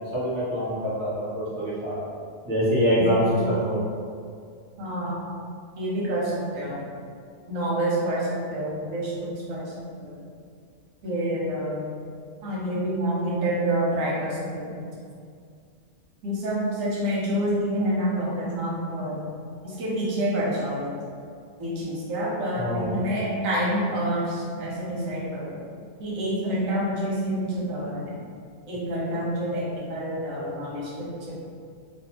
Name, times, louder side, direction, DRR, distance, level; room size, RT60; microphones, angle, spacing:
voice 1, 0.0-2.0 2.5-3.8 22.6-22.9, equal, 60° right, -9 dB, 1.1 m, -25 dB
voice 2, 3.0-3.5 4.8-5.2 5.8-6.9 7.5-9.7 10.0-10.1 11.0-11.9 12.4-14.9 16.2-19.2 19.6-20.9 21.6-25.6 26.0-28.2 28.7-31.4, right 1 dB, 90° right, -5 dB, 1.1 m, -28 dB
2.6 x 2.2 x 2.8 m, 2.2 s
omnidirectional pair, 1.3 m